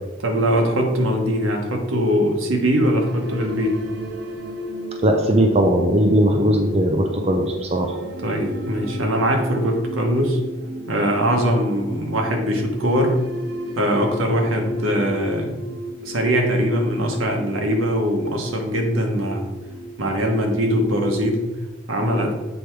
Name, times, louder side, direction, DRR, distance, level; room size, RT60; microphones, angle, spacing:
voice 1, 0.2-3.8 8.2-10.4 10.9-13.2 13.7-15.6 16.0-19.5 20.0-21.4 21.9-22.3, equal, 85° right, 2 dB, 1.2 m, -21 dB
sound 1, 2.9-21.3, equal, 55° right, 0.8 m, -34 dB
voice 2, 5.0-8.0, equal, 30° right, 3 dB, 0.6 m, -18 dB
7.9 x 3.4 x 4.6 m, 1.2 s
head